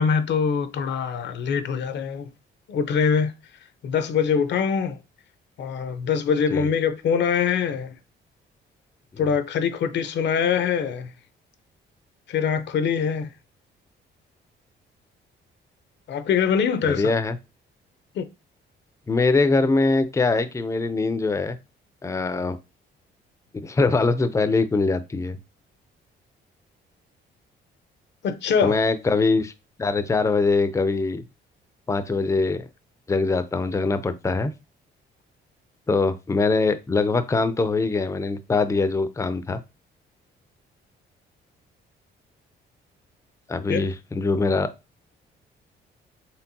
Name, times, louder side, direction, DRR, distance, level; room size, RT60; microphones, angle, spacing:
voice 1, 0.0-2.3 2.7-3.3 3.8-5.0 5.6-8.0 9.2-11.1 12.3-13.3 16.1-17.1 18.1-18.3 28.2-28.8 43.7-43.9, left 6 dB, 65° left, 0.6 m, -23 dB
voice 2, 16.9-17.4 19.1-21.6 22.0-22.6 23.5-25.4 28.6-29.5 29.8-31.2 31.9-32.7 33.1-34.5 35.9-39.6 43.5-44.7, left 3 dB, 15° left, 0.5 m, -23 dB
4.4 x 3.3 x 2.7 m
cardioid pair, 90°, 20 cm